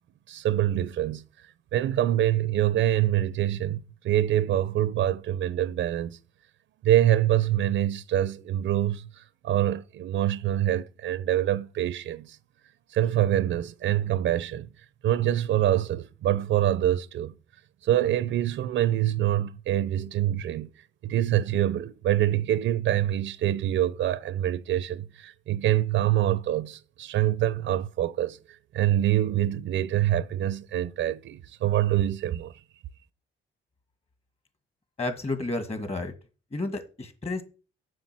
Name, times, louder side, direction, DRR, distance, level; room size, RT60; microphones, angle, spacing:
voice 1, 0.3-1.2 1.7-6.2 6.8-12.4 12.9-14.7 15.0-17.3 17.8-20.7 21.0-28.4 28.7-32.5, right 12 dB, 70° right, 0.6 m, -25 dB
voice 2, 35.0-36.1 36.5-37.4, left 2 dB, 30° left, 2.0 m, -31 dB
7.6 x 6.1 x 6.1 m
cardioid pair, 90°, 20 cm